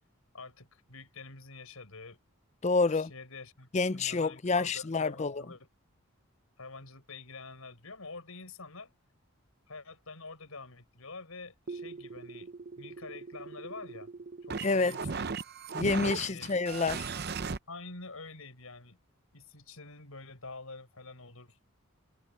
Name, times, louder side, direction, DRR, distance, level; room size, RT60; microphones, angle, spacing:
voice 1, 0.3-2.2 2.9-5.7 6.6-8.9 9.7-14.1 14.4-15.3 16.3-16.5 17.7-19.0 19.3-21.6, left 3 dB, 85° left, 5.7 m, -47 dB
voice 2, 2.6-3.1 3.7-5.4 14.6-14.9 15.7-17.1, left 3 dB, 30° left, 0.5 m, -28 dB
sound 1, 11.7-17.6, right 4 dB, 50° right, 0.7 m, -38 dB
head